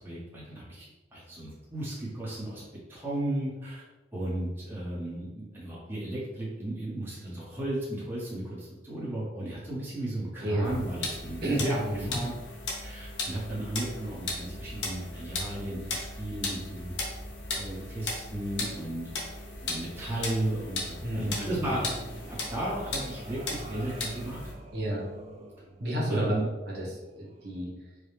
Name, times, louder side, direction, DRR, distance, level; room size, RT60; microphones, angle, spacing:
voice 1, 0.0-2.6 2.9-3.8 4.1-11.8 12.1-12.4 12.7-16.9 17.5-19.1 19.6-21.9 22.3-24.4 26.1-26.5, right 1 dB, 10° right, -7 dB, 1.1 m, -34 dB
voice 2, 10.4-10.8 11.4-12.1 21.0-21.8 24.7-25.0 25.8-26.3 26.6-27.7, right 1 dB, 60° right, -4 dB, 1.2 m, -31 dB
sound 1, 10.6-24.5, left 2 dB, 80° left, 0.9 m, -37 dB
sound 2, 18.6-27.6, right 2 dB, 40° right, 0.4 m, -50 dB
4.7 x 2.3 x 3.3 m, 1.1 s
head